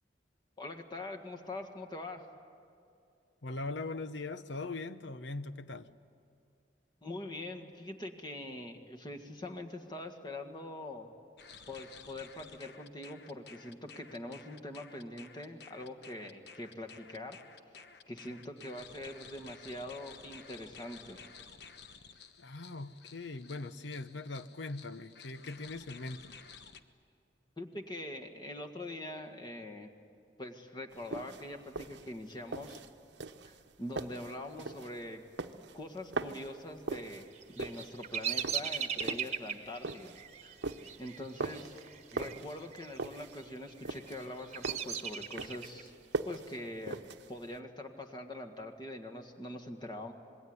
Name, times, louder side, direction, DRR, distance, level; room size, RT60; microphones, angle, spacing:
voice 1, 0.6-2.2 7.0-11.1 11.7-17.4 17.8-21.2 27.6-29.9 30.4-32.8 33.4-35.2 35.7-37.3 37.6-40.1 40.4-40.6 41.0-41.8 42.1-45.9 46.2-47.0 47.3-50.1, left 1 dB, 25° left, 3 dB, 1.9 m, -43 dB
voice 2, 3.4-5.9 22.4-26.4, left 3 dB, 90° left, 12 dB, 0.9 m, -41 dB
sound 1, 11.4-26.8, left 6 dB, 65° left, 1.1 m, -53 dB
sound 2, 30.9-47.6, right 3 dB, 80° right, 0.9 m, -41 dB
Bird vocalization bird call bird song, 37.4-42.4 42.7-43.3 43.8-45.8, right 7 dB, 40° right, 1.2 m, -38 dB
26.5 x 21.5 x 9.6 m, 2.4 s
head